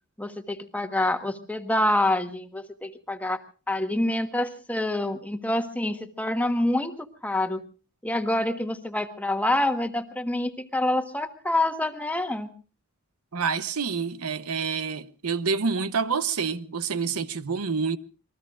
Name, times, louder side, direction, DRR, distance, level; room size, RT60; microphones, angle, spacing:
voice 1, 0.2-3.4 3.7-7.6 8.0-12.5, left 1 dB, 5° left, 1.3 m, -27 dB
voice 2, 13.3-18.0, right 5 dB, 85° right, 0.9 m, -27 dB
27.5 x 21.0 x 2.5 m
head